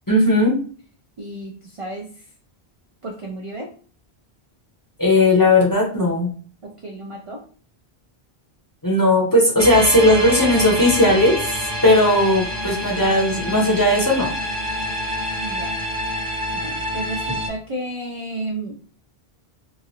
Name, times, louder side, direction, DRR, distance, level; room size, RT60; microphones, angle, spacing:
voice 1, 0.1-0.5 5.0-6.3 8.8-11.4 11.8-14.3, left 1 dB, 20° left, -2 dB, 0.7 m, -16 dB
voice 2, 1.2-2.3 3.0-3.7 6.6-7.4 15.4-15.8 16.5-18.8, right 1 dB, 50° right, 0 dB, 0.4 m, -32 dB
sound 1, 9.6-17.5, equal, 15° right, 0.9 m, -27 dB
2.9 x 2.4 x 2.8 m, 0.42 s
omnidirectional pair, 1.1 m